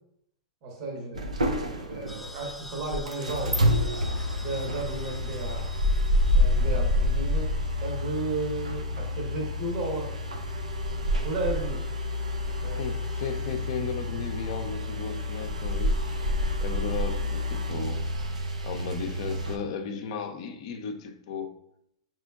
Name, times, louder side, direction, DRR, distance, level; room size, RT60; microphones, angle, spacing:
voice 1, 0.6-1.2 1.8-3.6 4.4-5.7 6.3-10.1 11.2-11.8 12.6-12.8, right 2 dB, 55° right, 0 dB, 1.1 m, -34 dB
sound 1, 1.2-19.6, left 1 dB, 90° right, 0.5 m, -28 dB
sound 2, 2.1-7.3, left 1 dB, ahead, 0.3 m, -45 dB
voice 2, 12.8-16.0 16.6-18.0 18.6-21.5, left 5 dB, 55° left, 6 dB, 0.5 m, -35 dB
4.9 x 3.0 x 2.3 m, 0.78 s
hypercardioid pair, 110°, 4 cm